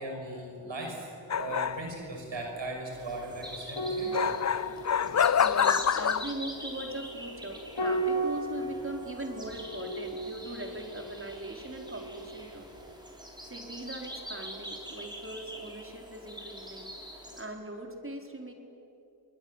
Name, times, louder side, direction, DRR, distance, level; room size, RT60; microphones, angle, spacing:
voice 1, 0.0-4.5 5.0-5.4, right 2 dB, 80° right, 1 dB, 6.5 m, -39 dB
sound 1, 1.3-1.9 4.1-6.3, left 8 dB, 40° left, 0.6 m, -26 dB
sound 2, 2.9-17.4, equal, 10° right, 5.7 m, -45 dB
sound 3, 3.7-12.4 12.7-12.9, right 2 dB, 65° left, 3.3 m, -36 dB
voice 2, 4.6-12.7 13.4-18.5, right 1 dB, 30° right, 3 dB, 4.3 m, -41 dB
29.0 x 21.0 x 8.1 m, 2.8 s
cardioid pair, 45°, 44 cm